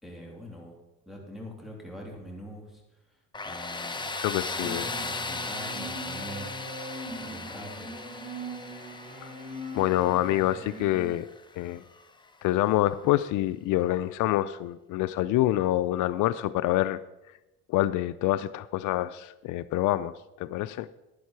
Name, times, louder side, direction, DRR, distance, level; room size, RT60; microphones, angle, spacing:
voice 1, 0.0-2.8 3.1-6.5 7.0-7.9, equal, ahead, -1 dB, 3.3 m, -44 dB
Tools, 3.3-12.1, left 3 dB, 15° left, 0.9 m, -37 dB
voice 2, 4.2-4.9 9.2-9.3 9.7-11.3 11.6-11.8 12.4-17.0 17.7-20.1 20.4-20.9, left 15 dB, 75° left, 15 dB, 0.5 m, -26 dB
sound 1, 4.6-11.1, right 1 dB, 20° right, 2.7 m, -41 dB
11.0 x 10.5 x 4.6 m, 0.98 s
cardioid pair, 100°, 31 cm